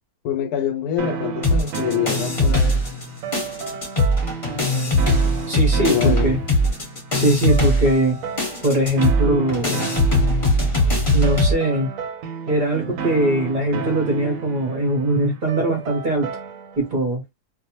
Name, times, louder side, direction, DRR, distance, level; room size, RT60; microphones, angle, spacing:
voice 1, 0.2-2.8 5.8-6.3, left 10 dB, 80° left, 1.1 m, -25 dB
sound 1, 1.0-16.9, right 6 dB, 70° right, 0.9 m, -32 dB
sound 2, 1.4-3.1 3.3-11.5, left 1 dB, 25° left, 0.9 m, -20 dB
voice 2, 5.5-6.4 7.1-8.2 8.6-9.8 11.1-11.9 12.5-16.3 16.8-17.2, right 1 dB, 50° right, 0.6 m, -21 dB
2.6 x 2.1 x 2.8 m
omnidirectional pair, 1.6 m